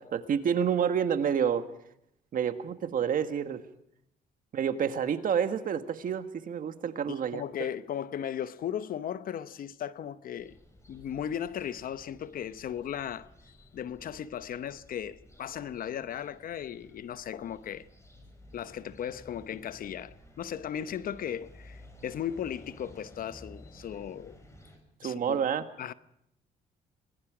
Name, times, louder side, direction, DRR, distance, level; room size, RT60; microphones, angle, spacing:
voice 1, 0.0-1.6 2.3-3.6 4.5-7.4 25.0-25.7, right 8 dB, 55° right, 1.7 m, -28 dB
voice 2, 7.1-10.6 10.9-13.3 13.7-17.8 18.5-24.4 25.0-25.4 25.8-25.9, left 9 dB, 60° left, 0.9 m, -36 dB
sound 1, 10.4-24.8, left 1 dB, 15° left, 6.2 m, -54 dB
26.5 x 21.0 x 5.0 m
cardioid pair, 85°, 17 cm